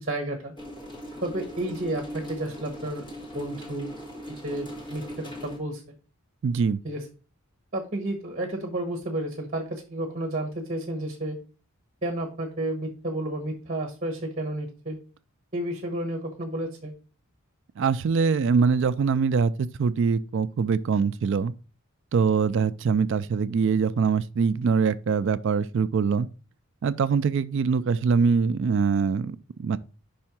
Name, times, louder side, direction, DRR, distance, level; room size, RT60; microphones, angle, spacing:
voice 1, 0.0-0.5 1.2-3.1 3.3-3.9 4.3-5.8 6.8-7.0 7.7-11.4 12.0-15.0 15.5-16.9, right 1 dB, 35° right, 1.1 m, -31 dB
sound 1, 0.6-5.6, equal, 20° left, 1.5 m, -39 dB
voice 2, 6.4-6.8 17.8-21.5 22.1-26.3 26.8-29.8, right 5 dB, 55° right, 0.3 m, -23 dB
5.5 x 4.3 x 5.9 m
head